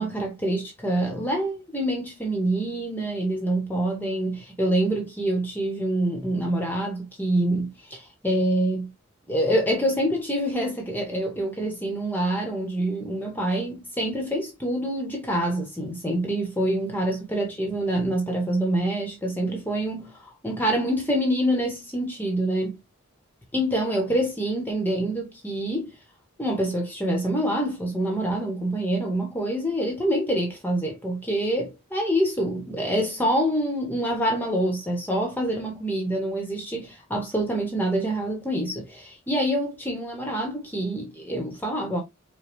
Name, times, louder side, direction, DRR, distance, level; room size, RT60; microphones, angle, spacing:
voice 1, 0.0-8.9 9.3-22.8 23.5-25.9 26.4-42.0, right 1 dB, 10° left, 1.0 m, -26 dB
5.1 x 2.2 x 3.1 m
head